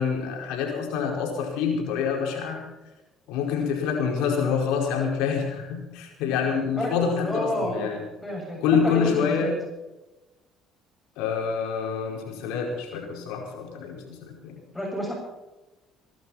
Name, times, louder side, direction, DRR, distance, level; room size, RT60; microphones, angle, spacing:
voice 1, 0.0-2.6 3.3-8.0 8.6-9.5 11.2-14.6, left 6 dB, 85° left, 0 dB, 4.9 m, -26 dB
voice 2, 7.2-7.9 8.2-9.5 14.7-15.1, equal, 10° left, -2 dB, 7.1 m, -29 dB
20.0 x 12.0 x 5.8 m, 1.1 s
supercardioid pair, 80°, 0 cm